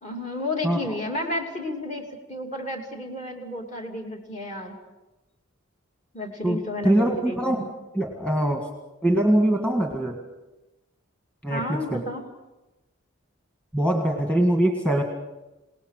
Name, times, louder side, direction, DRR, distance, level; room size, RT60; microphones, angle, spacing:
voice 1, 0.0-4.7 6.1-7.7 11.5-12.2, left 1 dB, 35° left, 1 dB, 2.8 m, -32 dB
voice 2, 6.4-7.6 7.9-8.7 9.0-10.2 11.4-12.0 13.7-15.0, right 1 dB, 5° left, 2 dB, 1.9 m, -23 dB
28.0 x 18.5 x 6.7 m, 1.1 s
head